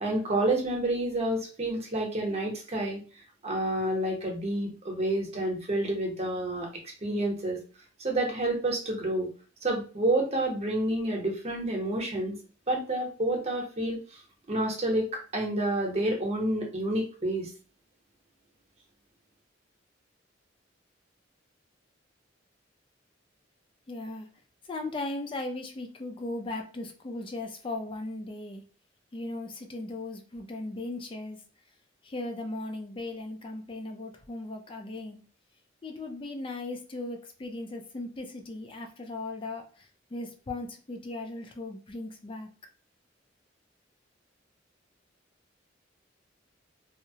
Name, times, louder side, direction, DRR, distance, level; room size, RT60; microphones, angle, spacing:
voice 1, 0.0-3.0 3.4-6.7 7.0-7.6 8.0-9.3 9.6-12.3 12.7-14.0 14.5-17.5, right 1 dB, 35° right, 1 dB, 0.8 m, -29 dB
voice 2, 23.9-24.3 24.7-28.6 29.1-31.4 32.0-35.2 35.8-42.5, left 2 dB, 25° left, 4 dB, 0.4 m, -37 dB
2.7 x 2.0 x 2.6 m, 0.35 s
head